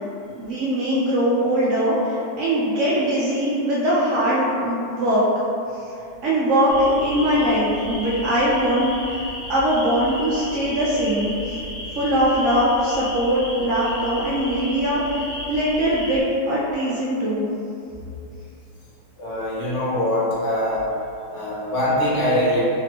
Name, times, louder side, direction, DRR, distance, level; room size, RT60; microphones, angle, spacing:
voice 1, 0.4-5.2 6.2-6.8 7.0-11.6 12.0-17.5, equal, 70° right, -8 dB, 0.7 m, -21 dB
sound 1, 6.7-16.2, left 1 dB, 75° left, 1.5 m, -34 dB
voice 2, 19.2-20.9 21.3-22.6, left 1 dB, 55° left, -8 dB, 1.0 m, -23 dB
3.3 x 3.3 x 2.9 m, 2.7 s
omnidirectional pair, 1.9 m